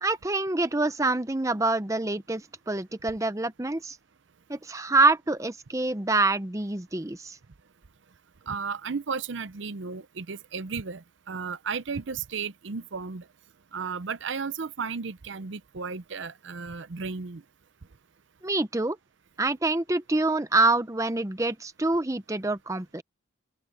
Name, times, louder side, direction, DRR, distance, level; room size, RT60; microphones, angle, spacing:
voice 1, 0.0-4.0 4.5-7.4 18.4-19.0 19.4-23.0, right 2 dB, 15° right, 0.7 m, -26 dB
voice 2, 8.5-13.3 13.7-17.4, right 5 dB, 70° right, 0.6 m, -34 dB
open air
head